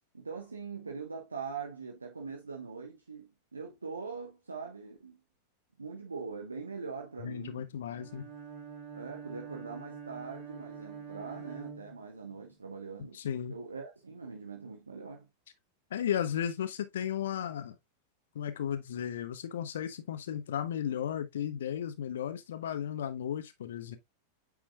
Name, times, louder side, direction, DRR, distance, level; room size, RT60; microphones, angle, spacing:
voice 1, 0.1-5.2 5.8-7.7 8.9-13.2 13.5-15.3, right 5 dB, 80° right, 1.0 m, -42 dB
voice 2, 7.2-8.3 13.1-13.6 15.9-17.8 18.3-24.0, left 9 dB, 60° left, 0.8 m, -35 dB
Bowed string instrument, 7.9-12.5, right 6 dB, 40° right, 2.0 m, -45 dB
8.5 x 4.9 x 2.3 m
figure-of-eight pair, 90°, 0 cm